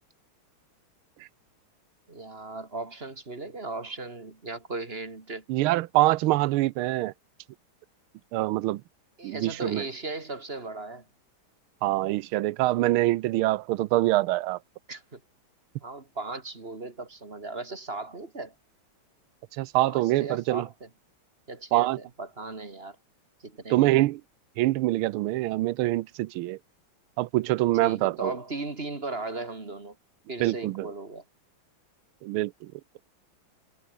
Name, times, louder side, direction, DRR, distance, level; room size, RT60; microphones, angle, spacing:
voice 1, 2.1-5.4 9.2-11.1 14.9-15.2 15.8-18.5 19.9-20.9 21.5-23.0 23.4-24.0 27.8-30.0 30.3-31.2, right 3 dB, 30° right, 2.5 m, -37 dB
voice 2, 5.5-7.1 8.3-8.8 9.2-9.8 11.8-14.6 19.6-20.7 21.7-22.0 23.7-24.2 24.6-26.6 27.2-28.3 30.4-30.9 32.2-32.7, right 17 dB, 85° right, 1.5 m, -25 dB
omnidirectional pair, 2.3 m